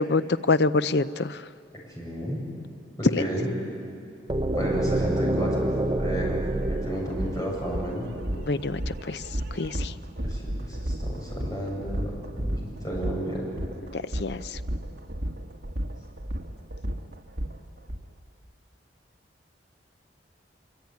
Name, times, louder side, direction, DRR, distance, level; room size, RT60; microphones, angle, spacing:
voice 1, 0.0-1.4 3.0-3.2 8.3-9.2 9.5-9.9 13.9-14.6, left 3 dB, 65° left, 13 dB, 0.7 m, -26 dB
voice 2, 1.9-2.4 3.0-3.5 4.5-5.7 6.0-6.4 6.7-8.1 10.2-12.1 12.4-12.6 12.8-13.5, right 1 dB, 20° left, -3 dB, 7.9 m, -32 dB
sound 1, 4.3-8.2, right 1 dB, 25° right, 0.8 m, -27 dB
sound 2, 6.6-18.0, right 1 dB, 65° right, 1.7 m, -33 dB
25.0 x 24.5 x 9.6 m, 2.4 s
head